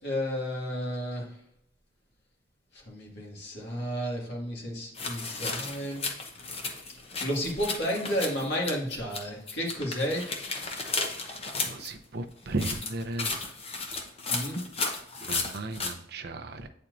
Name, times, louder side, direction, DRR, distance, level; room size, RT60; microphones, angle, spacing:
voice 1, 0.0-1.3 2.9-6.0 7.2-10.2 14.3-14.7, equal, 60° left, -2 dB, 2.0 m, -32 dB
sound 1, 4.9-9.2 9.5-11.9 12.5-15.9, left 4 dB, 30° left, 0.8 m, -34 dB
voice 2, 11.6-13.3 15.3-16.7, right 2 dB, 55° right, 7 dB, 0.6 m, -35 dB
8.6 x 4.3 x 2.6 m, 0.72 s
head